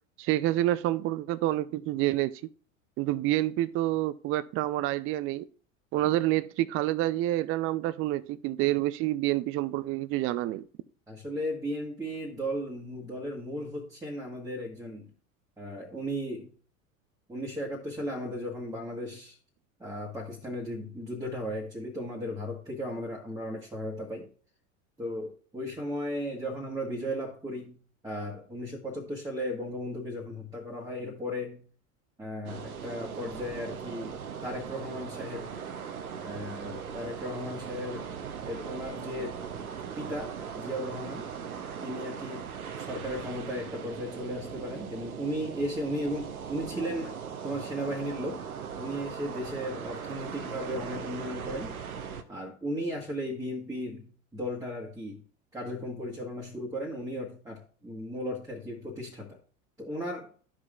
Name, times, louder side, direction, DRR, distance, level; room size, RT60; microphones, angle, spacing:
voice 1, 0.2-2.4 3.0-5.5 5.9-10.7, right 15 dB, 35° right, 0.4 m, -28 dB
voice 2, 11.1-15.1 15.6-16.5 17.3-19.4 19.8-24.3 25.0-27.8 28.0-31.6 32.2-34.1 34.4-35.6 36.2-38.1 38.4-39.4 39.9-41.3 41.8-42.5 42.8-48.4 48.8-51.8 52.3-55.2 55.5-59.4 59.8-60.3, equal, 10° right, 1.6 m, -36 dB
sound 1, 32.5-52.2, right 7 dB, 90° right, 0.8 m, -39 dB
13.0 x 4.9 x 2.4 m
hypercardioid pair, 80°, 42 cm